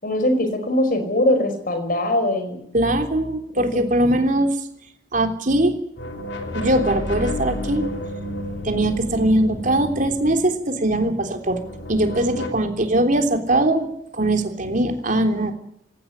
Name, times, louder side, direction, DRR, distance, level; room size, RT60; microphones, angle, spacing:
voice 1, 0.0-2.6 3.5-3.8, left 1 dB, 50° left, 7 dB, 5.0 m, -21 dB
voice 2, 2.7-4.6 5.1-5.8 6.5-7.9 8.6-11.6 11.9-13.9 14.1-15.5, right 1 dB, 45° right, 5 dB, 3.5 m, -21 dB
sound 1, 6.0-10.9 11.4-12.5, left 1 dB, 70° left, 3.2 m, -31 dB
19.5 x 18.0 x 9.9 m, 0.73 s
head